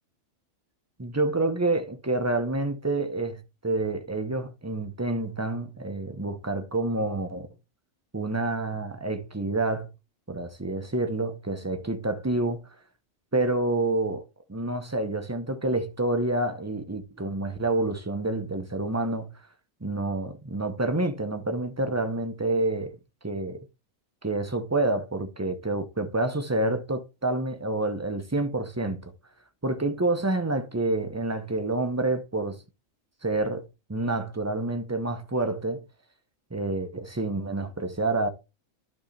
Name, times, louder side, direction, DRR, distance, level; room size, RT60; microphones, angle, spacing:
voice 1, 1.0-7.5 8.1-9.9 10.3-12.6 13.3-14.2 14.5-19.3 19.8-23.0 23.2-23.6 24.2-29.0 29.6-32.6 33.2-35.8 36.5-38.3, right 2 dB, 15° right, 0.9 m, -28 dB
11.5 x 5.5 x 3.4 m
omnidirectional pair, 1.4 m